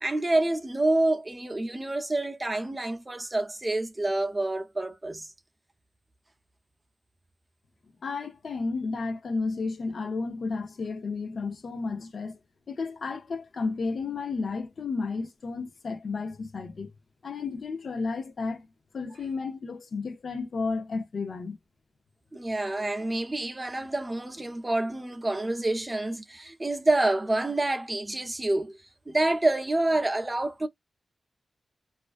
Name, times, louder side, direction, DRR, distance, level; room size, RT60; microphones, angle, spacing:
voice 1, 0.0-5.3 22.3-28.8 29.1-30.7, right 2 dB, 25° right, 0.6 m, -27 dB
voice 2, 8.0-12.4 12.7-16.9 17.2-18.7 18.9-21.6, left 4 dB, 70° left, 0.4 m, -32 dB
2.4 x 2.1 x 2.4 m
cardioid pair, 55°, 0 cm